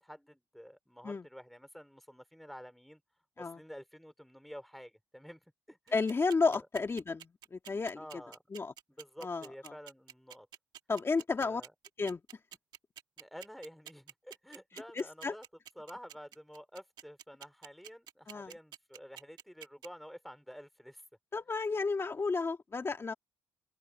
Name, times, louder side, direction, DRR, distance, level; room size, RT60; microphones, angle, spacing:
voice 1, 0.0-3.0 3.4-5.4 5.7-6.0 6.5-6.7 7.9-8.4 8.9-10.5 11.4-11.7 13.2-15.4 15.8-21.0, equal, ahead, 5.0 m, -50 dB
voice 2, 5.9-8.0 8.5-8.7 9.2-9.5 10.9-11.6 12.0-12.2 14.9-15.3 18.3-18.5 21.3-23.1, left 4 dB, 35° left, 1.8 m, -32 dB
sound 1, 5.9-19.9, right 10 dB, 65° right, 1.6 m, -49 dB
open air
hypercardioid pair, 55°, 8 cm